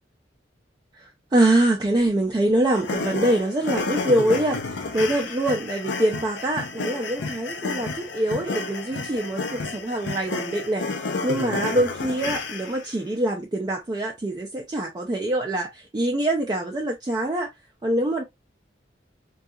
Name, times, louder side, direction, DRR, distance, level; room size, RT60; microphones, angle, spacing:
voice 1, 0.9-17.5 17.8-18.2, right 1 dB, 25° right, 0.4 m, -24 dB
sound 1, 2.7-12.9, left 4 dB, 70° left, 0.5 m, -31 dB
2.7 x 2.3 x 2.3 m
head